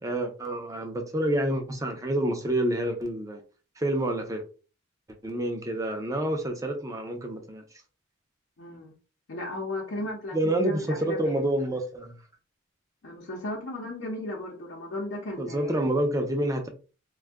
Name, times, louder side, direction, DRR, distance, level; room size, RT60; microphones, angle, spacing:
voice 1, 0.0-3.4 3.8-4.4 5.2-7.6 10.3-12.1 15.4-16.7, right 1 dB, 15° right, 0.5 m, -28 dB
voice 2, 8.6-8.9 9.3-11.4 13.0-15.8, left 1 dB, 85° left, 0.8 m, -35 dB
2.6 x 2.3 x 3.4 m
head